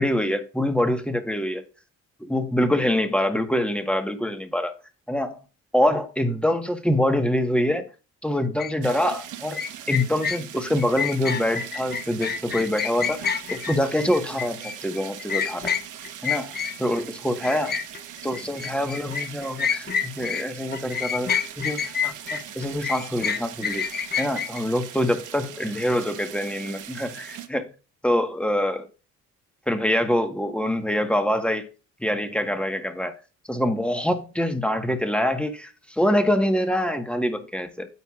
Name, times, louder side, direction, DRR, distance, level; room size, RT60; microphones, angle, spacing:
voice 1, 0.0-1.6 2.2-4.7 5.1-5.4 5.7-7.9 8.2-9.6 9.9-15.7 16.2-16.5 16.8-17.7 18.2-21.8 22.0-23.8 24.2-27.7 28.0-28.9 29.7-31.7 32.0-33.1 33.5-37.9, left 1 dB, 5° left, 1.5 m, -25 dB
sound 1, 8.6-8.7 9.5-17.1 17.4-20.5 20.7-24.6, left 7 dB, 35° left, 0.7 m, -28 dB
sound 2, 8.8-27.5, right 10 dB, 80° right, 1.2 m, -41 dB
9.4 x 7.8 x 2.5 m
cardioid pair, 90°, 30 cm